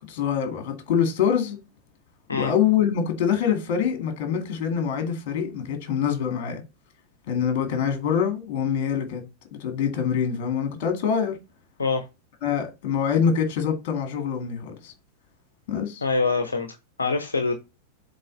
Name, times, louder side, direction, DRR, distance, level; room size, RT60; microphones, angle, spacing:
voice 1, 0.1-1.6 2.4-6.6 7.3-9.2 9.5-11.4 12.4-14.9 15.7-16.0, left 7 dB, 45° left, 2.0 m, -25 dB
voice 2, 16.0-16.7 17.0-17.5, left 4 dB, 75° left, 0.7 m, -24 dB
7.7 x 3.5 x 3.9 m
figure-of-eight pair, 90°, 0 cm